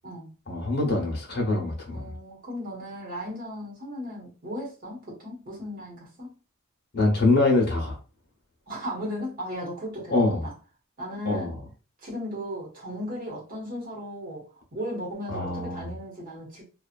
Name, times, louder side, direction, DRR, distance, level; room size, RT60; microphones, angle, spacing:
voice 1, 0.5-2.1 6.9-8.0 10.1-10.4 11.3-11.5 15.3-15.9, left 2 dB, 50° left, 1.0 m, -24 dB
voice 2, 1.9-6.4 8.7-10.5 11.0-11.6 12.0-14.5 14.7-16.6, equal, 40° right, 1.1 m, -36 dB
2.8 x 2.4 x 2.5 m
head